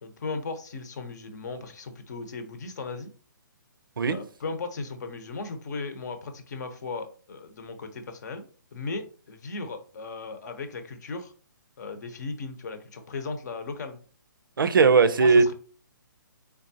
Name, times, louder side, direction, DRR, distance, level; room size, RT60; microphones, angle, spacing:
voice 1, 0.0-3.1 4.1-8.4 8.7-11.3 11.8-14.0 15.2-15.5, left 3 dB, 55° left, 0.8 m, -36 dB
voice 2, 14.6-15.5, right 4 dB, 80° right, 0.5 m, -18 dB
3.8 x 3.5 x 2.7 m
hypercardioid pair, 140°, 11 cm